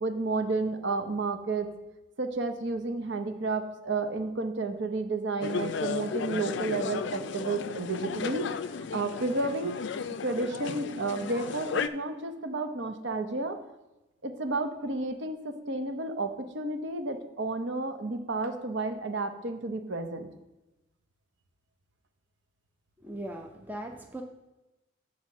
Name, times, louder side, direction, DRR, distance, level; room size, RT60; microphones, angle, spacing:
voice 1, 0.0-1.7 2.2-8.5 8.9-9.7 10.2-13.6 14.2-20.3, right 3 dB, 65° right, 7 dB, 0.7 m, -31 dB
sound 1, 5.4-11.9, left 6 dB, 60° left, 0.4 m, -34 dB
voice 2, 23.0-24.2, right 1 dB, 10° right, 3 dB, 0.5 m, -39 dB
7.6 x 4.3 x 6.2 m, 1.0 s
head